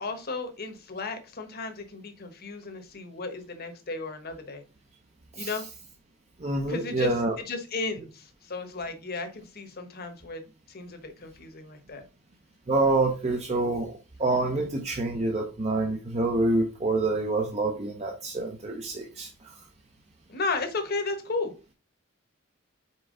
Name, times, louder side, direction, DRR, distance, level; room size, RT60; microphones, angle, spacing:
voice 1, 0.0-4.6 5.4-5.6 6.7-10.4 10.7-12.0 20.3-21.5, left 3 dB, 45° left, 6 dB, 1.2 m, -34 dB
voice 2, 6.4-7.4 12.7-19.5, right 2 dB, 30° right, 2 dB, 0.7 m, -27 dB
5.6 x 4.5 x 3.7 m, 0.31 s
head